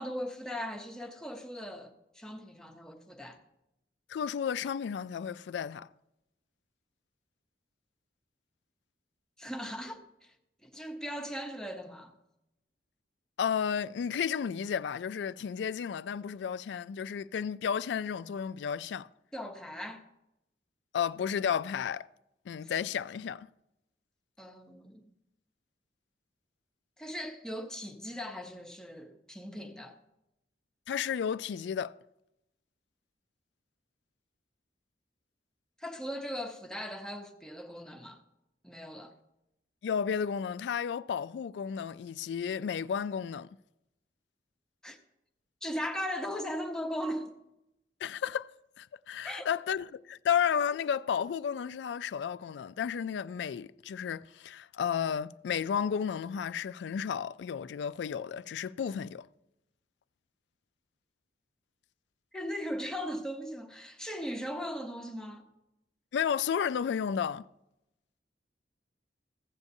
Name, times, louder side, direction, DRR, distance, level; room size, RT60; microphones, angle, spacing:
voice 1, 0.0-3.4 9.4-10.3 10.6-12.1 19.3-20.0 22.6-22.7 24.4-25.0 27.0-30.0 35.8-38.2 38.6-39.1 44.8-45.0 45.6-47.4 49.2-49.5 62.3-65.5, equal, 5° left, 0.7 m, -38 dB
voice 2, 4.1-5.9 13.4-19.1 20.9-22.1 22.5-23.5 30.9-31.9 39.8-43.5 48.0-48.5 48.8-59.3 66.1-67.4, left 7 dB, 80° left, 0.3 m, -32 dB
15.5 x 8.3 x 2.7 m
head